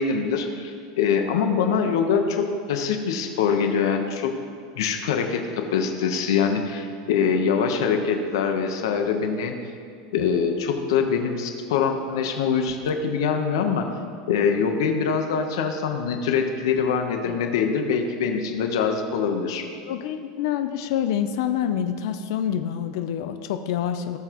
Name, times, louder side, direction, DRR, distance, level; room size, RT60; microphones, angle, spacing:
voice 1, 0.0-4.3 4.8-9.5 10.1-13.9 14.3-19.7, left 6 dB, 85° left, 4 dB, 1.0 m, -24 dB
voice 2, 19.9-24.2, left 9 dB, 65° left, 8 dB, 0.5 m, -27 dB
17.5 x 7.1 x 3.0 m, 2.2 s
supercardioid pair, 165°, 2 cm